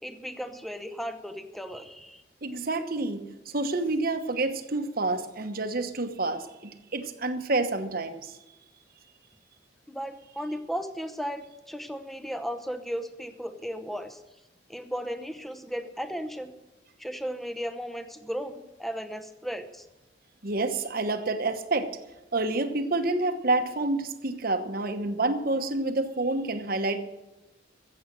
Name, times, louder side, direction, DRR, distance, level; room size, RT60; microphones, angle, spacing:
voice 1, 0.0-2.2 9.9-14.2 14.7-16.5 17.0-19.8, equal, ahead, 9 dB, 0.8 m, -35 dB
voice 2, 2.4-8.4 20.4-22.0 22.3-27.0, right 2 dB, 50° right, 8 dB, 1.1 m, -28 dB
14.5 x 8.0 x 7.7 m, 0.99 s
head